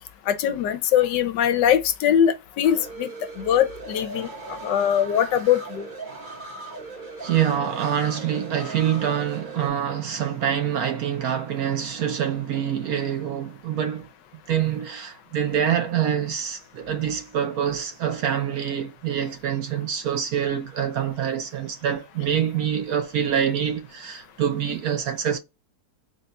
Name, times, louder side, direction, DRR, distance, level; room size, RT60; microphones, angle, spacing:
voice 1, 0.3-3.1 3.4-4.3 4.6-5.9, left 9 dB, 85° left, 1.3 m, -21 dB
sound 1, 2.6-9.7, right 3 dB, 40° right, 0.8 m, -38 dB
voice 2, 7.2-14.1 14.5-25.4, right 9 dB, 65° right, 1.0 m, -25 dB
4.0 x 2.2 x 4.0 m
omnidirectional pair, 1.9 m